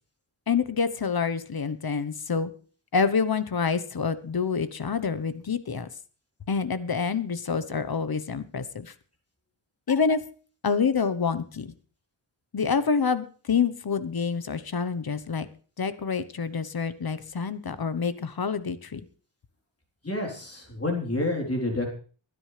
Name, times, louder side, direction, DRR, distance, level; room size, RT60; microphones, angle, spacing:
voice 1, 0.5-2.5 2.9-5.9 6.5-8.9 9.9-10.2 10.6-11.7 12.5-15.5 15.8-19.0, left 5 dB, 50° left, 13 dB, 1.1 m, -27 dB
voice 2, 20.0-21.9, left 2 dB, 30° left, 0 dB, 3.9 m, -28 dB
23.0 x 10.0 x 3.3 m, 0.40 s
wide cardioid pair, 95°, 46 cm